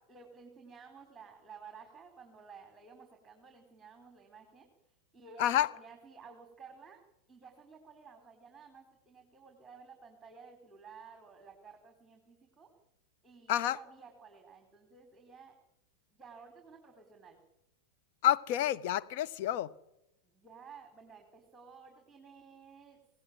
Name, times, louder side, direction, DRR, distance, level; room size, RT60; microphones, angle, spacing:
voice 1, 0.1-4.7 5.1-7.0 7.3-12.7 13.2-15.6 16.1-17.4 20.2-23.0, right 5 dB, 10° right, 5.0 m, -54 dB
voice 2, 5.4-5.7 13.5-13.8 18.2-19.7, left 12 dB, 45° left, 1.3 m, -29 dB
26.0 x 19.0 x 9.3 m
figure-of-eight pair, 90°, 0 cm